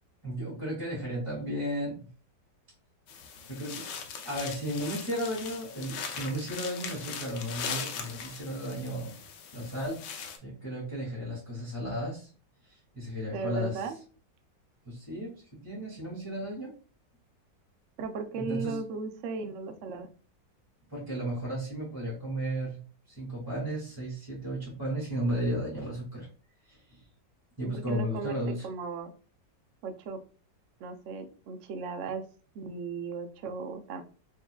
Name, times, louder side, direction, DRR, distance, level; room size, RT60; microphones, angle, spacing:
voice 1, 0.2-2.1 3.5-3.9 4.2-9.2 9.5-10.0 10.4-12.3 12.7-13.9 14.8-15.3 15.6-16.7 18.3-18.8 20.9-22.8 23.2-26.3 26.7-26.8 27.6-28.7, equal, 10° right, -6 dB, 1.9 m, -34 dB
sound 1, 3.1-10.4, left 6 dB, 75° left, 1.3 m, -40 dB
voice 2, 13.3-14.0 18.0-20.1 27.6-28.4 28.6-29.1 29.8-30.2 30.8-32.2 32.5-34.0, right 4 dB, 75° right, 7 dB, 0.7 m, -36 dB
4.6 x 3.6 x 2.2 m, 0.39 s
omnidirectional pair, 1.9 m